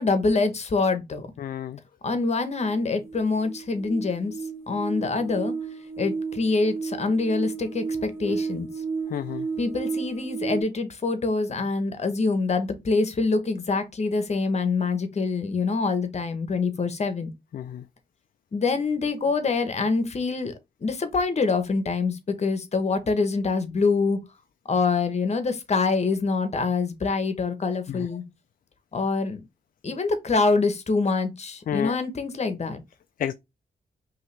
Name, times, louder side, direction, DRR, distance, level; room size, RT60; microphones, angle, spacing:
voice 1, 0.0-1.3 2.0-4.4 4.7-5.6 6.0-8.7 9.6-17.3 18.5-20.5 20.8-24.2 24.7-28.2 28.9-29.4 29.8-32.8, left 4 dB, 40° left, 1.0 m, -25 dB
voice 2, 1.4-1.8 9.1-9.5 17.5-17.8 27.9-28.0 31.7-32.0 33.2-33.3, left 10 dB, 55° left, 0.4 m, -30 dB
sound 1, 2.6-10.6, right 5 dB, 15° right, 1.4 m, -33 dB
5.5 x 2.9 x 3.3 m
wide cardioid pair, 115°, 17 cm